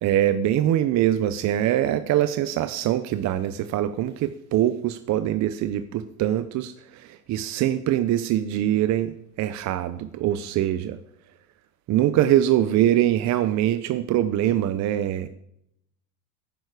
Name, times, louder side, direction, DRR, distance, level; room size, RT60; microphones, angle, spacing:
voice 1, 0.0-9.1 9.4-11.0 11.9-15.3, right 12 dB, 40° right, 12 dB, 0.6 m, -23 dB
11.0 x 9.5 x 4.9 m, 0.77 s
supercardioid pair, 100°, 43 cm